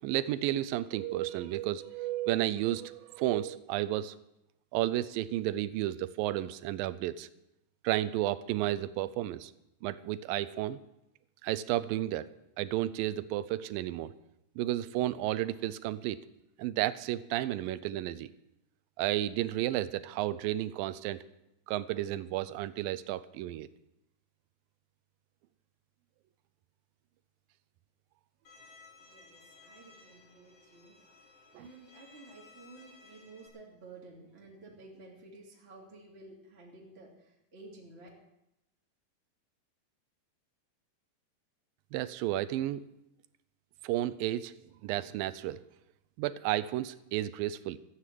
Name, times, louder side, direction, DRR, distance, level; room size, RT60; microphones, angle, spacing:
voice 1, 0.0-4.1 4.7-7.3 7.8-9.5 9.8-10.8 11.4-12.3 12.6-14.1 14.6-16.2 16.6-18.3 19.0-21.2 21.7-23.7 31.6-31.7 41.9-42.8 43.8-44.5 44.8-45.6 46.2-47.8, right 14 dB, 85° right, 16 dB, 2.4 m, -32 dB
Bowed string instrument, 28.4-33.5, left 3 dB, 45° left, 3.9 m, -58 dB
voice 2, 29.0-31.3 31.5-38.1, right 2 dB, 20° right, -3 dB, 2.8 m, -53 dB
14.5 x 9.8 x 7.6 m, 0.86 s
omnidirectional pair, 4.0 m